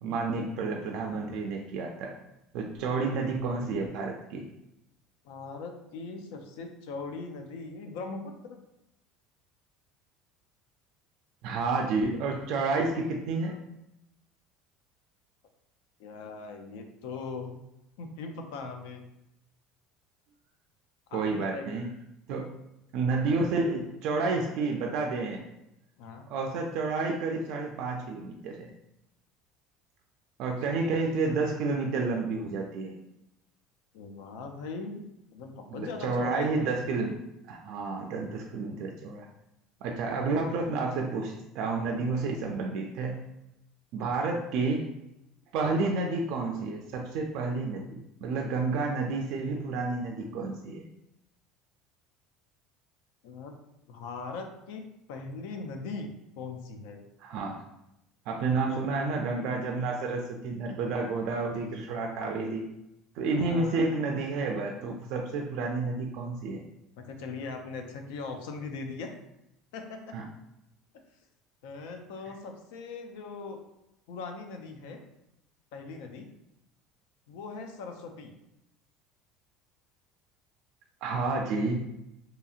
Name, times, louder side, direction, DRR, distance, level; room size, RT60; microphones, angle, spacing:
voice 1, 0.0-2.1 2.5-4.5 11.4-13.6 21.1-21.9 22.3-22.5 22.9-25.4 26.3-28.7 30.4-32.9 35.7-37.2 37.5-39.3 39.8-43.2 43.9-44.9 45.5-50.8 57.2-57.6 58.3-62.7 63.2-66.6 70.1-70.2 81.0-81.8, right 3 dB, 60° right, 1 dB, 0.3 m, -30 dB
voice 2, 5.2-8.6 16.0-17.6 18.0-19.0 21.1-21.8 26.0-26.3 30.7-31.0 33.9-35.0 35.3-36.7 44.0-44.1 45.7-45.9 53.2-53.5 53.9-56.1 56.4-57.0 58.4-59.1 63.3-64.1 67.0-69.1 69.7-70.1 71.6-73.6 74.1-75.0 75.7-76.3 77.3-78.3, left 4 dB, 85° left, 5 dB, 0.4 m, -40 dB
2.8 x 2.7 x 2.4 m, 0.87 s
cardioid pair, 145°, 0 cm